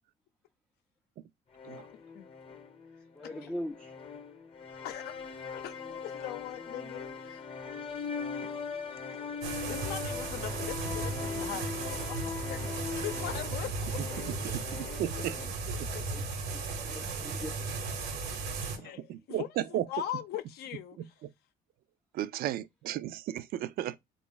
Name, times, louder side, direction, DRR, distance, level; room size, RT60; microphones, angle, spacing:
sound 1, 1.5-15.5, left 5 dB, 35° left, 0.7 m, -40 dB
voice 1, 3.2-3.9 14.4-14.7 15.2-15.4 15.9-16.2 16.5-17.9, left 1 dB, 5° left, 0.4 m, -42 dB
voice 2, 4.8-7.5 9.5-14.2 14.5-14.6 15.9-16.0 18.7-21.2, left 11 dB, 70° left, 0.6 m, -41 dB
sound 2, 9.4-18.8, right 3 dB, 80° right, 1.1 m, -36 dB
voice 3, 14.7-15.3 18.8-19.4 19.7-19.8 22.1-24.0, right 12 dB, 60° right, 0.4 m, -34 dB
3.9 x 2.4 x 3.7 m
cardioid pair, 110°, 17 cm